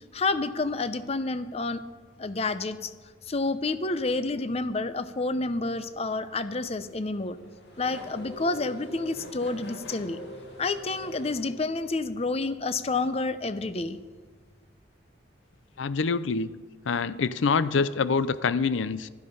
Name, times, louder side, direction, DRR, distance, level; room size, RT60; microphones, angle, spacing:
voice 1, 0.1-1.8 2.2-2.9 3.3-7.4 7.8-10.2 10.6-14.0, left 3 dB, 35° left, 12 dB, 0.7 m, -29 dB
Race car auto racing / Accelerating revving vroom, 6.7-12.1, left 1 dB, 65° left, 2.3 m, -44 dB
voice 2, 15.8-16.5 16.9-19.1, left 5 dB, 85° left, 15 dB, 0.5 m, -25 dB
15.0 x 13.0 x 5.5 m, 1.4 s
head